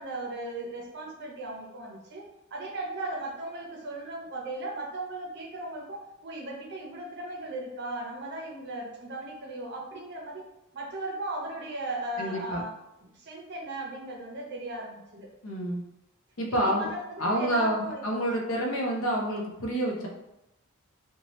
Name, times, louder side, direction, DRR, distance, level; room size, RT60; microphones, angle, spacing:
voice 1, 0.0-2.3 2.5-10.5 10.7-12.8 13.1-15.3 16.5-18.3, right 2 dB, 55° right, 0 dB, 0.6 m, -37 dB
voice 2, 12.2-12.6 15.4-15.8 16.4-16.9 17.2-20.1, right 1 dB, 75° left, 0 dB, 0.6 m, -28 dB
2.7 x 2.2 x 3.0 m, 0.88 s
head